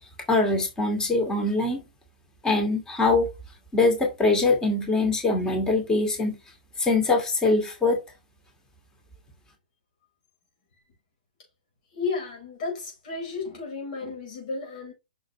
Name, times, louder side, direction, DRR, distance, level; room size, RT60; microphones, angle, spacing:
voice 1, 0.3-1.8 2.4-3.3 3.7-6.4 6.8-8.0, left 3 dB, 15° left, 2.3 m, -23 dB
voice 2, 11.9-14.9, left 4 dB, 55° left, 5.0 m, -33 dB
6.4 x 6.2 x 3.1 m
hypercardioid pair, 130°, 5 cm